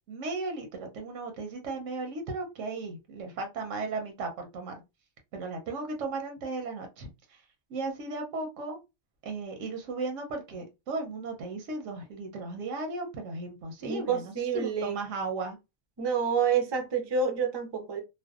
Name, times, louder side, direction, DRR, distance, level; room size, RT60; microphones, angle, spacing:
voice 1, 0.1-4.8 5.3-7.4 7.7-8.8 9.2-15.6, right 3 dB, 90° right, 1.0 m, -36 dB
voice 2, 13.8-15.0 16.0-18.0, right 6 dB, 45° right, 0.3 m, -28 dB
2.6 x 2.1 x 2.3 m
omnidirectional pair, 1.2 m